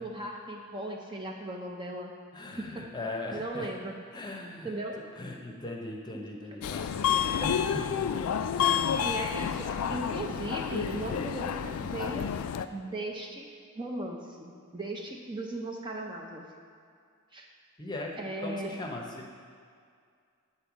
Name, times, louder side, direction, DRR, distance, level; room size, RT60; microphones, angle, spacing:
voice 1, 0.0-2.1 2.6-2.9 3.3-4.0 4.6-5.0 9.0-12.3 12.7-16.4 17.3-17.5 18.2-18.8, right 1 dB, 20° right, 0 dB, 0.6 m, -37 dB
voice 2, 2.3-3.7 4.1-4.7 5.2-8.1 8.6-9.1 17.8-18.1 18.4-19.3, left 2 dB, 20° left, 0 dB, 0.8 m, -39 dB
Subway metro underground, 6.6-12.7, left 8 dB, 85° left, 0.3 m, -29 dB
8.8 x 4.3 x 6.0 m, 2.2 s
head